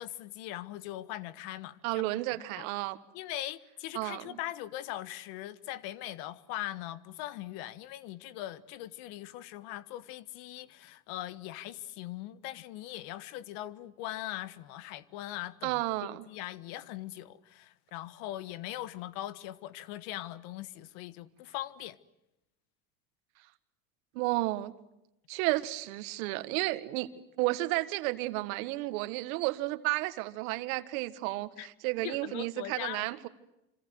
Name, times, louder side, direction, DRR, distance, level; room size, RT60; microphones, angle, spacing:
voice 1, 0.0-2.2 2.6-2.7 3.1-22.0 31.6-31.7 32.0-33.1, left 14 dB, 70° left, 1.6 m, -41 dB
voice 2, 1.8-3.0 3.9-4.4 15.6-16.2 24.2-24.7 25.3-27.1 27.4-33.3, right 19 dB, 80° right, 1.7 m, -32 dB
26.5 x 26.5 x 7.9 m
supercardioid pair, 95°, 41 cm